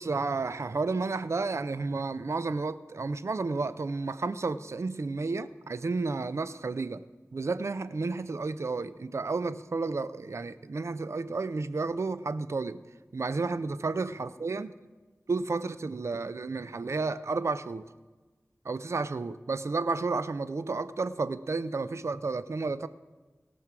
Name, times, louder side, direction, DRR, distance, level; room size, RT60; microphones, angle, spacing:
voice 1, 0.0-7.0 7.3-12.8 13.1-14.7 15.3-17.9 18.6-22.9, right 3 dB, 65° right, 14 dB, 0.5 m, -31 dB
17.0 x 6.1 x 6.0 m, 1.3 s
wide cardioid pair, 65°, 5 cm